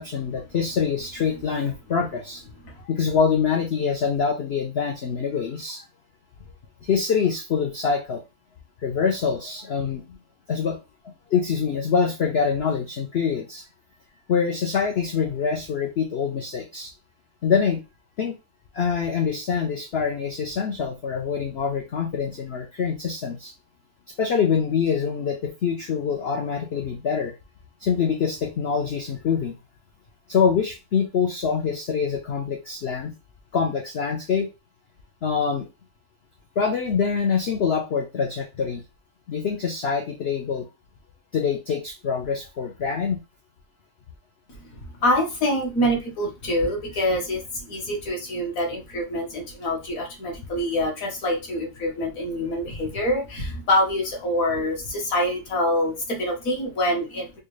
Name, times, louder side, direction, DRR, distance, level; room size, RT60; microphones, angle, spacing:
voice 1, 0.0-2.4 2.8-5.8 6.8-8.2 8.8-10.2 10.5-10.8 11.3-13.6 14.3-16.9 17.4-17.8 18.2-18.3 18.7-23.5 24.2-27.3 27.8-29.6 30.3-33.1 33.5-34.5 35.2-35.7 36.6-38.8 39.3-40.7 41.3-43.2, left 6 dB, 80° left, 3 dB, 0.5 m, -25 dB
voice 2, 45.0-57.4, left 1 dB, 55° left, 0 dB, 1.4 m, -25 dB
4.4 x 2.4 x 3.1 m, 0.26 s
omnidirectional pair, 1.8 m